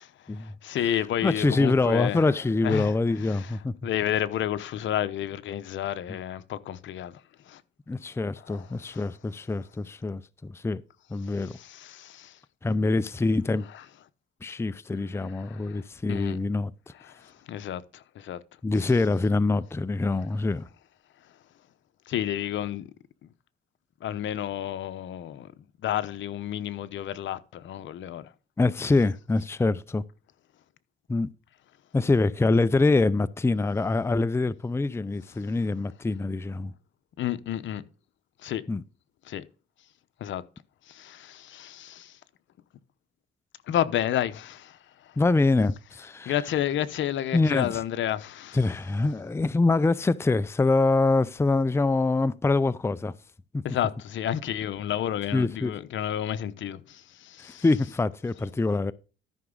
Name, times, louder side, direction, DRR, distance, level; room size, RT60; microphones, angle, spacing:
voice 1, 0.0-2.3 2.6-2.9 3.3-3.5 3.8-7.2 7.5-7.6 8.5-9.0 11.2-12.4 15.4-15.8 16.1-16.4 17.1-18.4 22.1-22.8 23.2-23.3 24.0-25.5 25.8-28.3 37.2-37.8 38.4-38.6 39.3-39.4 40.2-40.4 40.9-42.2 43.7-45.1 46.3-48.6 53.6-57.6, left 11 dB, 70° left, 0.9 m, -31 dB
voice 2, 1.2-3.7 6.1-6.2 7.9-10.8 11.1-11.6 12.6-13.7 14.4-16.7 18.6-20.7 28.6-30.0 31.1-31.3 31.9-36.7 38.7-38.8 45.2-46.3 47.3-47.8 48.5-53.1 53.5-53.6 55.3-55.7 57.4-58.9, left 3 dB, 15° left, 0.5 m, -25 dB
13.5 x 6.0 x 3.9 m
cardioid pair, 90°, 20 cm